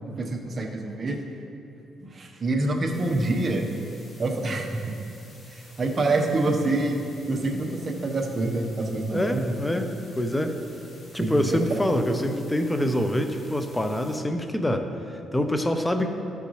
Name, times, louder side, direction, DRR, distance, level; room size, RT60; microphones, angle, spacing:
voice 1, 0.1-1.2 2.1-3.6 4.2-4.8 5.5-9.6 11.2-11.6 12.1-12.3, right 2 dB, 35° right, 1 dB, 1.1 m, -26 dB
sound 1, 2.9-14.2, left 1 dB, 35° left, 1.8 m, -52 dB
voice 2, 9.1-10.6 11.1-16.1, left 1 dB, 10° left, 6 dB, 0.7 m, -26 dB
12.5 x 6.8 x 3.2 m, 2.7 s
cardioid pair, 90°, 0 cm